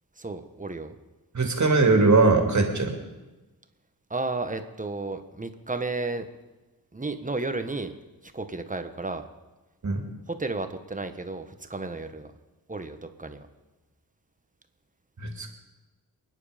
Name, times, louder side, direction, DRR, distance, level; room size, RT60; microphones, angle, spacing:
voice 1, 0.2-1.0 4.1-6.3 6.9-7.9 8.2-9.3 10.3-12.3 12.7-13.4, right 3 dB, 20° right, 8 dB, 1.4 m, -33 dB
voice 2, 1.3-2.9 9.8-10.0 15.2-15.5, right 3 dB, 50° right, 4 dB, 2.7 m, -21 dB
27.5 x 10.0 x 5.2 m, 1.1 s
wide cardioid pair, 90°, 36 cm